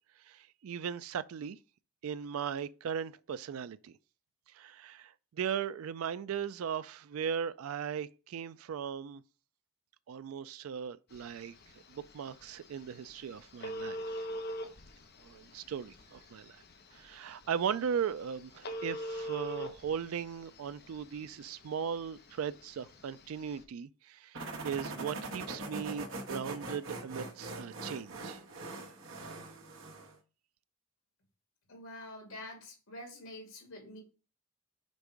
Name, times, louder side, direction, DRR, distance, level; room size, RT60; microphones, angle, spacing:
voice 1, 0.3-1.6 2.0-3.9 4.5-9.2 10.1-11.5 11.9-14.3 15.2-16.6 16.9-28.4, right 7 dB, 90° right, 0.4 m, -38 dB
Telephone, 11.1-23.6, equal, 50° left, 0.9 m, -44 dB
sound 1, 24.3-30.2, right 2 dB, 65° right, 1.3 m, -42 dB
voice 2, 31.7-34.0, left 1 dB, 80° left, 2.8 m, -47 dB
5.3 x 4.4 x 4.8 m
head